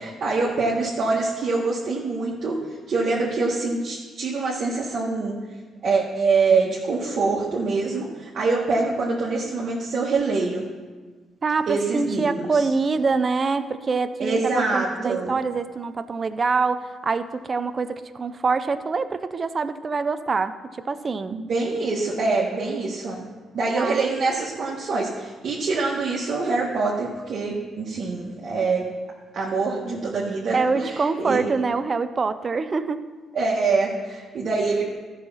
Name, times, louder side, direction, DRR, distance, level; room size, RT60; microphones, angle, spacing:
voice 1, 0.0-2.6 2.9-5.3 5.8-10.6 11.7-12.7 14.2-15.3 21.3-23.2 23.5-28.9 29.3-31.4 33.3-34.8, right 3 dB, 60° right, -5 dB, 1.7 m, -25 dB
voice 2, 11.4-21.4 23.8-24.1 30.5-33.0, right 4 dB, 35° right, 11 dB, 0.6 m, -25 dB
13.0 x 5.7 x 5.6 m, 1.4 s
cardioid pair, 90°, 0 cm